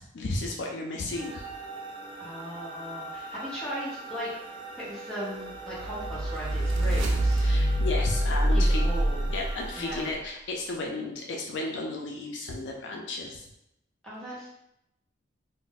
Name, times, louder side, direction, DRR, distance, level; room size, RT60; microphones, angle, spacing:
voice 1, 0.0-1.5 7.4-8.8 9.3-13.4, left 2 dB, 65° left, 0 dB, 0.4 m, -33 dB
sound 1, 1.1-10.1, right 2 dB, 25° right, 0.4 m, -41 dB
voice 2, 2.2-4.3 4.8-7.5 8.5-9.3 9.7-10.1 14.0-14.5, equal, 5° left, -8 dB, 0.9 m, -38 dB
sound 2, 5.8-10.0, right 1 dB, 80° right, 0.5 m, -25 dB
2.5 x 2.0 x 3.9 m, 0.83 s
head